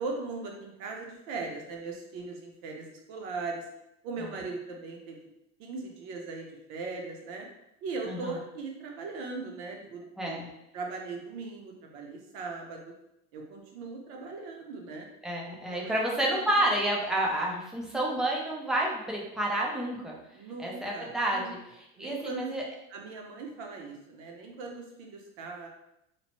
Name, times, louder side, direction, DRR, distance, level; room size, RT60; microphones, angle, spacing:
voice 1, 0.0-3.7 4.0-5.2 5.6-7.5 7.8-10.4 10.7-12.9 13.3-15.1 15.4-16.4 20.3-21.5 22.0-22.5 22.9-25.7, right 3 dB, 60° right, 1 dB, 0.7 m, -39 dB
voice 2, 10.2-10.5 15.2-20.2 20.6-22.6, right 1 dB, ahead, -3 dB, 0.3 m, -30 dB
3.0 x 2.0 x 2.9 m, 0.84 s
supercardioid pair, 140°, 31 cm